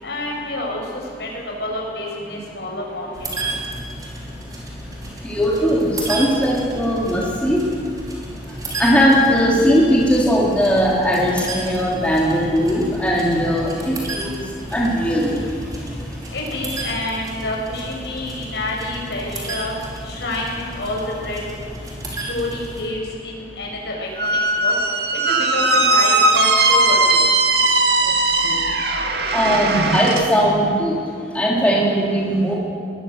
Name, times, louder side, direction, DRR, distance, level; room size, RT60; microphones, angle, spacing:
voice 1, 0.0-1.3 1.6-3.1 3.4-3.5 16.3-19.7 20.0-21.4 22.3-24.7 25.3-27.0, left 1 dB, 70° left, -2 dB, 7.3 m, -28 dB
sound 1, 3.1-22.8, right 1 dB, 20° right, 4.9 m, -33 dB
voice 2, 5.2-7.6 8.8-14.3 14.7-15.3 16.7-16.8 29.3-30.9 31.3-32.5, equal, 5° left, -5 dB, 3.5 m, -18 dB
Squeak, 24.2-30.3, right 2 dB, 65° right, 2.1 m, -18 dB
22.0 x 20.5 x 8.1 m, 2.3 s
head